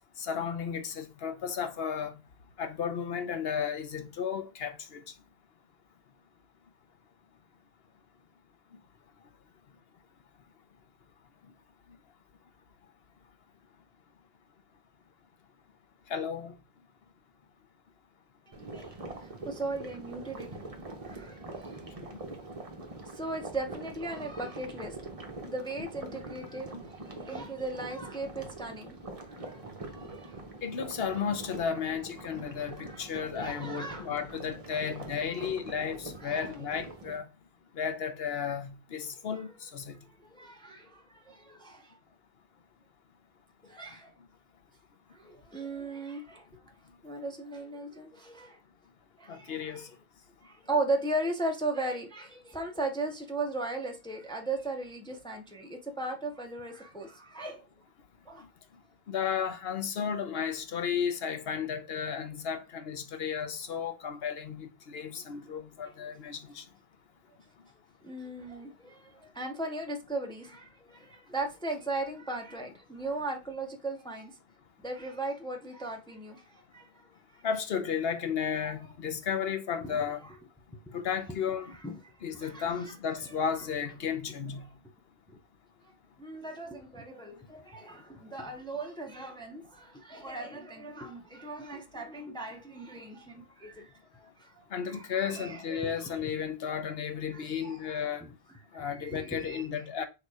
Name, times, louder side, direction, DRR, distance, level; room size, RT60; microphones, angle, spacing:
voice 1, 0.2-2.1 2.6-5.0 16.1-16.5 22.0-22.2 30.6-37.3 37.8-40.0 49.3-49.9 59.1-66.6 77.4-80.2 80.9-81.7 82.2-84.7 94.7-98.2 98.7-100.1, left 7 dB, 75° left, 1.0 m, -33 dB
sound 1, 18.5-37.2, right 2 dB, 35° right, 1.1 m, -44 dB
voice 2, 19.4-20.5 21.0-21.8 23.1-25.0 25.5-26.7 27.2-29.0 29.4-29.6 29.9-30.4 32.8-33.1 33.3-34.1 35.3-35.4 36.2-36.5 39.8-39.9 40.3-41.9 43.6-44.1 45.1-46.4 47.0-48.6 49.2-49.9 50.4-57.6 58.3-58.4 68.0-74.4 74.8-76.9 78.6-78.7 79.8-80.0 80.9-81.0 81.8-82.0 82.3-82.7 85.3-85.4 86.2-96.1 97.3-98.1 98.7-99.6, right 2 dB, 5° left, 0.7 m, -37 dB
6.6 x 2.9 x 4.8 m
omnidirectional pair, 1.0 m